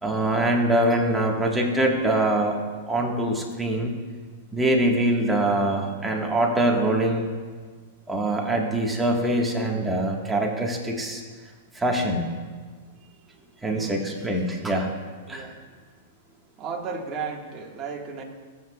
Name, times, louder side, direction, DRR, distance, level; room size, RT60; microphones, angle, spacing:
voice 1, 0.0-2.6 2.9-3.9 4.5-7.3 8.1-11.2 11.7-12.2 13.6-14.9 15.3-15.5, right 1 dB, 10° right, 0 dB, 1.5 m, -23 dB
voice 2, 13.7-14.1 15.3-15.6 16.6-18.2, right 5 dB, 30° right, 0 dB, 1.7 m, -34 dB
19.5 x 8.1 x 2.4 m, 1.5 s
hypercardioid pair, 125°, 0 cm